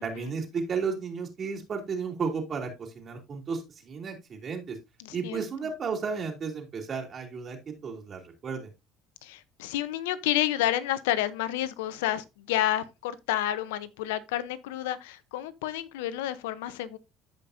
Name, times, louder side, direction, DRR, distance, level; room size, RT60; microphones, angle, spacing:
voice 1, 0.0-4.8 5.1-8.7, right 5 dB, 45° right, 3.1 m, -33 dB
voice 2, 5.0-5.4 9.2-17.0, left 13 dB, 90° left, 0.8 m, -30 dB
14.5 x 5.1 x 2.7 m
supercardioid pair, 85°, 0 cm